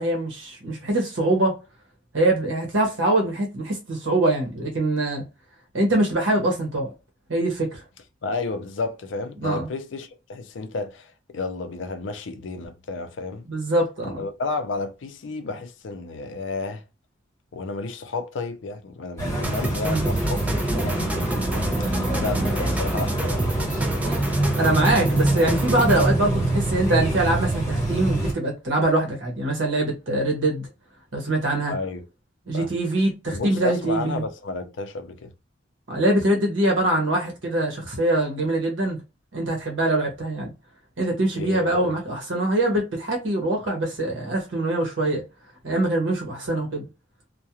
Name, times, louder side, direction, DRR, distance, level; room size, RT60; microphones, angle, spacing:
voice 1, 0.0-1.6 2.1-5.2 5.7-6.9 7.3-7.8 9.4-9.7 13.5-14.2 19.8-20.1 22.4-22.5 24.6-30.7 31.1-31.7 32.5-34.2 35.9-39.0 39.3-40.5 41.0-45.2 45.6-46.8, right 1 dB, 75° right, 0.9 m, -23 dB
voice 2, 8.2-13.5 14.0-16.8 17.5-21.2 21.5-23.5 31.7-32.1 32.5-32.7 33.3-35.3 41.3-42.0, left 3 dB, 70° left, 0.4 m, -32 dB
sound 1, 19.2-28.3, right 1 dB, 15° left, 1.2 m, -24 dB
sound 2, 19.4-26.2, right 1 dB, 10° right, 0.3 m, -31 dB
2.3 x 2.1 x 2.8 m
head